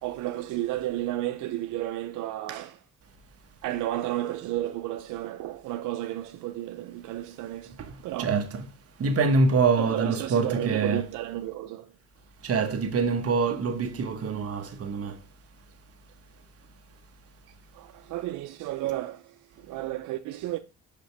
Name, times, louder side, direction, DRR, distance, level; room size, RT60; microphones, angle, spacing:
voice 1, 0.0-2.8 3.6-7.8 8.0-8.4 9.8-11.9 17.7-20.6, right 14 dB, 90° right, 0.5 m, -32 dB
voice 2, 7.8-8.7 9.0-11.0 12.4-15.2, right 4 dB, 50° right, 1.2 m, -25 dB
5.9 x 5.2 x 3.3 m
cardioid pair, 90°, 30 cm